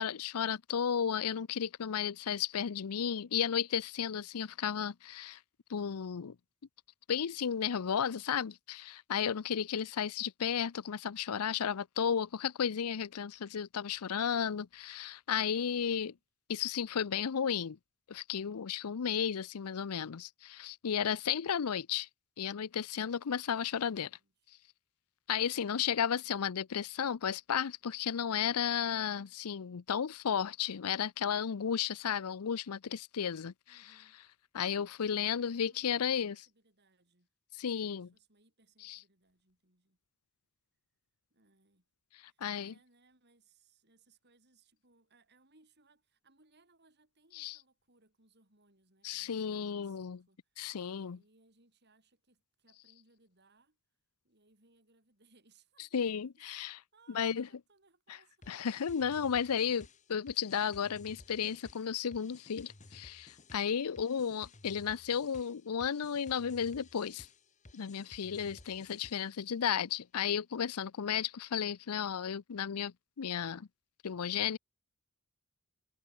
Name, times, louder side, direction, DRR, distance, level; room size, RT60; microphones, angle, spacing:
voice 1, 0.0-5.4 5.7-6.4 7.1-16.1 16.5-17.8 18.1-22.1 22.4-24.1 25.3-33.8 34.5-36.4 37.6-38.1 38.8-39.0 42.4-42.7 47.4-47.6 49.0-50.2 50.6-51.2 55.9-56.8 57.1-57.5 58.5-67.3 67.7-73.7 74.0-74.6, left 7 dB, 90° left, 0.6 m, -33 dB
voice 2, 7.5-8.0 15.5-16.2 23.7-24.5 25.7-26.5 33.7-34.2 35.0-37.3 37.9-40.0 41.3-41.9 42.2-53.8 54.2-56.1 56.4-56.5 56.9-58.6 59.0-59.3, right 3 dB, 50° right, 7.7 m, -69 dB
sound 1, 58.4-69.5, left 2 dB, 35° left, 1.6 m, -56 dB
head